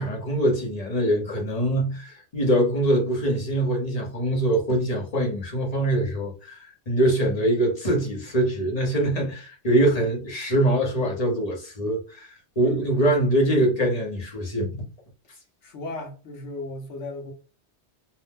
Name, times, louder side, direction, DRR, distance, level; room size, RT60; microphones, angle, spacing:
voice 1, 0.0-14.9, right 1 dB, 40° left, 0.9 m, -23 dB
voice 2, 15.6-17.3, left 1 dB, 85° left, 1.1 m, -36 dB
2.7 x 2.0 x 3.4 m
omnidirectional pair, 1.2 m